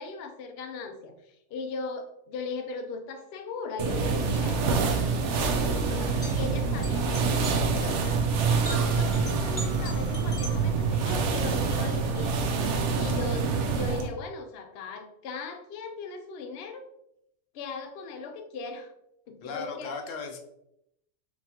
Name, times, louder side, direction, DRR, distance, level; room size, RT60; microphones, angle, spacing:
voice 1, 0.0-12.4 12.9-16.8 17.5-18.9 19.3-20.0, left 4 dB, 80° left, 5 dB, 0.5 m, -39 dB
sound 1, 3.8-14.1, right 4 dB, 70° right, 0.7 m, -26 dB
sound 2, 6.2-10.5, equal, 25° left, 0.7 m, -43 dB
voice 2, 19.4-20.4, left 5 dB, 65° left, 4 dB, 0.9 m, -36 dB
4.1 x 3.2 x 2.8 m, 0.79 s
omnidirectional pair, 1.7 m